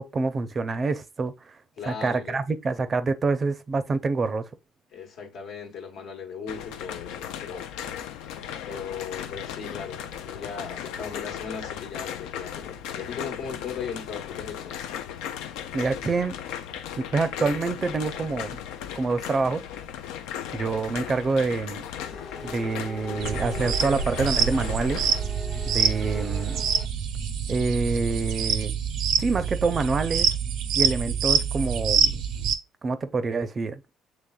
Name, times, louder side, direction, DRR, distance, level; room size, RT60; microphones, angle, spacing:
voice 1, 0.0-1.3 1.9-4.4 15.7-16.3 17.0-18.6 19.0-19.6 20.5-21.8 22.4-25.0 25.7-26.6 27.5-28.7 29.2-30.3 30.8-32.2 32.8-33.8, right 4 dB, 35° right, 0.5 m, -26 dB
voice 2, 1.8-2.4 4.9-7.7 8.7-14.8, left 6 dB, 70° left, 1.1 m, -37 dB
sound 1, 6.5-25.2, left 9 dB, 90° left, 0.4 m, -36 dB
sound 2, 21.9-26.9, left 2 dB, 25° left, 0.5 m, -41 dB
sound 3, 23.2-32.5, right 7 dB, 75° right, 0.6 m, -26 dB
6.7 x 3.2 x 2.3 m
supercardioid pair, 85°, 0 cm